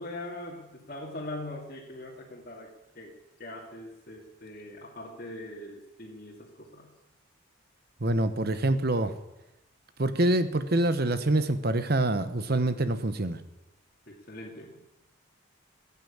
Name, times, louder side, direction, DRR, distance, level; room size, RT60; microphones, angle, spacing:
voice 1, 0.0-2.7 2.9-3.1 3.4-6.9 14.1-15.0, left 1 dB, 40° left, -3 dB, 2.5 m, -41 dB
voice 2, 8.0-9.1 10.0-13.4, right 1 dB, 45° right, 11 dB, 1.0 m, -26 dB
16.0 x 9.7 x 8.7 m, 0.94 s
head